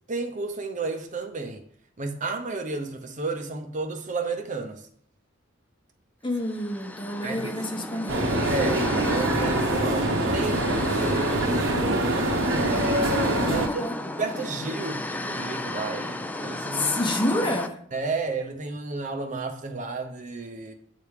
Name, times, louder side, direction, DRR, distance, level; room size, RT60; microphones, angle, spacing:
voice 1, 0.1-1.6 2.0-4.9 7.2-7.6 8.5-11.5 12.5-13.9 14.2-16.9 17.9-20.7, right 3 dB, 40° right, 5 dB, 0.7 m, -32 dB
voice 2, 6.2-8.4 10.5-10.7 13.5-13.9 16.7-17.8, left 1 dB, 25° left, 3 dB, 1.0 m, -29 dB
sound 1, 6.4-17.7, left 2 dB, 10° left, 0.3 m, -33 dB
sound 2, 8.1-13.7, right 1 dB, 65° right, 1.0 m, -25 dB
8.5 x 3.5 x 4.7 m, 0.63 s
head